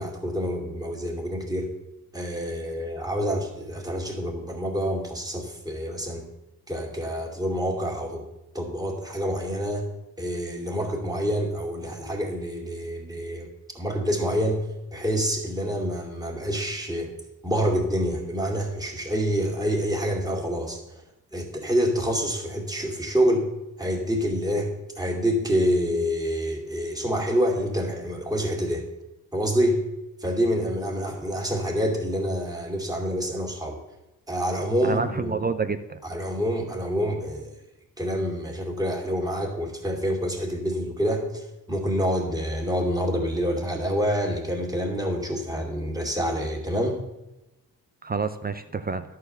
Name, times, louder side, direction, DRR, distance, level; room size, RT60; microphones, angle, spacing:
voice 1, 0.0-1.7 2.1-6.2 6.7-8.2 8.5-9.9 10.2-13.5 13.7-14.7 14.9-17.1 17.4-20.8 21.3-23.5 23.8-28.8 29.3-29.8 30.2-33.8 34.3-35.3 36.0-37.5 38.0-47.0, equal, 10° right, -1 dB, 2.3 m, -27 dB
voice 2, 34.8-36.0 48.0-49.0, right 4 dB, 25° right, 10 dB, 0.5 m, -28 dB
11.5 x 4.7 x 7.8 m, 0.97 s
cardioid pair, 100°, 35 cm